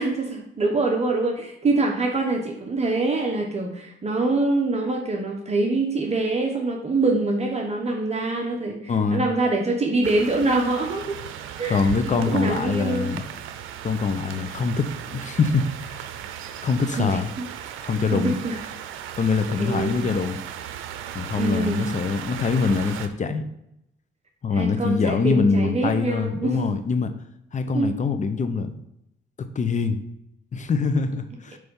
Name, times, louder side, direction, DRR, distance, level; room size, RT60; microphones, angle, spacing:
voice 1, 0.0-11.2 11.6-13.1 16.9-17.4 17.8-18.6 19.6-20.0 21.4-21.9 24.5-26.7 27.7-28.0, right 2 dB, 35° right, 1 dB, 1.0 m, -25 dB
voice 2, 8.9-9.2 11.7-13.2 13.8-16.1 16.6-17.3 17.8-18.4 19.2-20.4 21.1-23.4 24.4-27.1 27.5-28.7 29.5-30.0 30.5-31.6, left 4 dB, 40° left, 9 dB, 0.8 m, -24 dB
sound 1, 10.0-23.1, right 10 dB, 85° right, 0.6 m, -36 dB
7.9 x 3.4 x 5.4 m, 0.81 s
cardioid pair, 90°, 20 cm